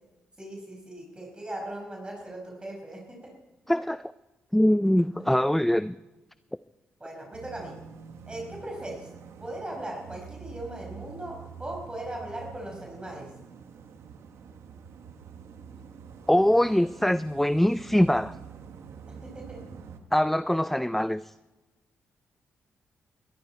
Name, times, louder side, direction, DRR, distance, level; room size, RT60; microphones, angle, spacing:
voice 1, 0.4-3.3 7.0-7.8 8.3-9.1 9.4-13.3 19.1-19.6, right 1 dB, 20° right, 0 dB, 5.2 m, -39 dB
voice 2, 3.7-4.0 4.5-6.0 16.3-18.4 20.1-21.3, left 1 dB, 5° left, 16 dB, 0.4 m, -23 dB
sound 1, 7.3-20.0, right 6 dB, 75° right, 1.3 m, -46 dB
21.0 x 12.5 x 4.5 m, 1.1 s
cardioid pair, 65°, 5 cm